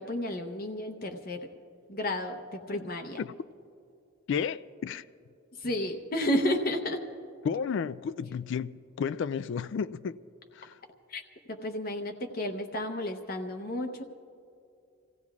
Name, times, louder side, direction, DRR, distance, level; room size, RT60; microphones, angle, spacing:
voice 1, 0.0-1.5 1.9-3.2 5.6-7.1 11.1-11.2 11.5-14.0, left 1 dB, 45° left, 0.8 m, -32 dB
voice 2, 4.3-5.0 7.4-10.2 10.5-10.8, left 6 dB, 60° left, 0.3 m, -32 dB
29.5 x 16.0 x 2.4 m
head